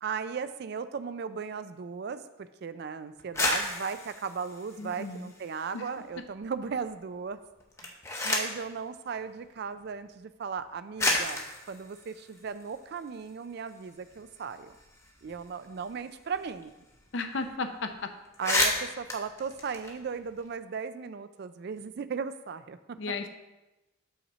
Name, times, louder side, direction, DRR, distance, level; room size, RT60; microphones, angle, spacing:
voice 1, 0.0-7.4 7.8-8.0 8.2-11.4 11.7-14.8 15.2-16.7 18.4-23.0, right 6 dB, 55° right, 12 dB, 0.4 m, -36 dB
sound 1, 3.2-5.8 6.1-6.8 7.6-8.7 9.7-9.8 10.6-10.7 11.0-13.3 13.7-13.8 14.0-16.6 16.9-17.0 17.3-17.6 17.9-18.0 18.2-20.5, left 2 dB, 15° left, 0.8 m, -32 dB
voice 2, 4.8-5.3 5.7-5.9 17.1-17.9 23.0-23.3, left 3 dB, 65° left, 7 dB, 0.6 m, -34 dB
5.6 x 4.2 x 6.1 m, 1.0 s
head